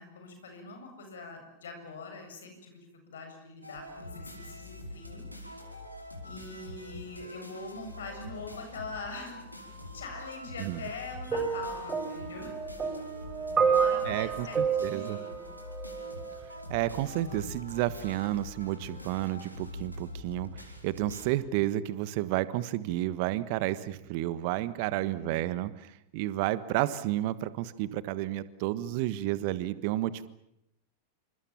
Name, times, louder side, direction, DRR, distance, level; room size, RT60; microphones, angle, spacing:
voice 1, 0.0-5.3 6.2-12.6 13.5-15.5 24.9-25.4, left 3 dB, 65° left, 5 dB, 7.6 m, -43 dB
sound 1, 3.6-21.2, left 1 dB, 90° right, 5.0 m, -44 dB
sound 2, 11.3-16.4 17.3-17.5, right 6 dB, 20° right, 5.7 m, -30 dB
voice 2, 14.1-15.2 16.7-30.3, right 15 dB, 45° right, 15 dB, 1.4 m, -31 dB
28.5 x 26.0 x 7.3 m, 0.80 s
figure-of-eight pair, 90°, 0 cm